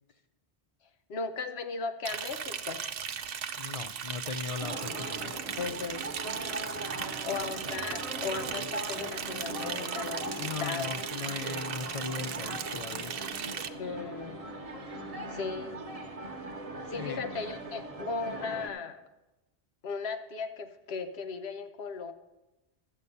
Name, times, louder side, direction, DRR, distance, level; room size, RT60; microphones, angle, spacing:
voice 1, 1.1-2.8 5.6-6.1 7.2-10.9 13.8-14.4 15.3-15.8 16.9-19.0 19.8-22.1, left 5 dB, 75° left, 8 dB, 1.1 m, -36 dB
Liquid, 2.1-13.7, right 7 dB, 65° right, 0.8 m, -37 dB
voice 2, 3.6-5.3 10.4-13.1 17.0-17.2, left 5 dB, 60° left, 10 dB, 0.3 m, -38 dB
sound 1, 4.6-18.7, right 2 dB, 35° right, 1.0 m, -40 dB
12.0 x 8.4 x 5.4 m, 1.0 s
omnidirectional pair, 1.1 m